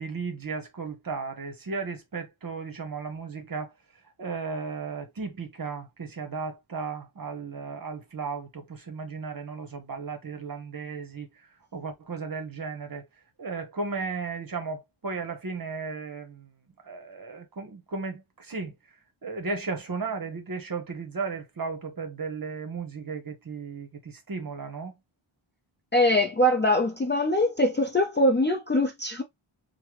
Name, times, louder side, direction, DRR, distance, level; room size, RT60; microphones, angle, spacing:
voice 1, 0.0-3.7 4.0-13.1 13.4-16.5 16.8-19.0 19.2-24.9, right 4 dB, 45° right, 0.9 m, -35 dB
voice 2, 25.9-29.2, left 1 dB, 25° left, 0.4 m, -23 dB
3.3 x 2.2 x 3.0 m
wide cardioid pair, 135°, 50 cm